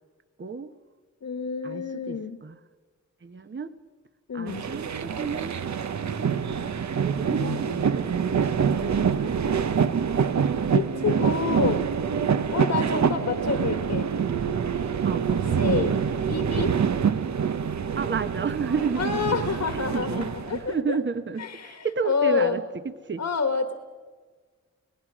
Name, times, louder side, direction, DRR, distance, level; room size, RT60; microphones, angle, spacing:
voice 1, 0.4-0.7 1.6-2.6 3.2-3.7 4.3-5.6 6.1-8.2 12.9-13.1 15.0-15.3 18.0-23.2, right 5 dB, 40° right, 11 dB, 1.1 m, -32 dB
voice 2, 1.2-2.4 4.3-4.7 7.4-7.6 10.7-11.8 12.5-14.1 15.3-16.7 19.0-21.0 21.4-22.6 23.2-23.7, left 5 dB, 65° left, 8 dB, 1.4 m, -28 dB
sound 1, 4.5-20.7, right 7 dB, 70° right, 0.9 m, -26 dB
29.0 x 19.0 x 6.2 m, 1.5 s
wide cardioid pair, 95°, 29 cm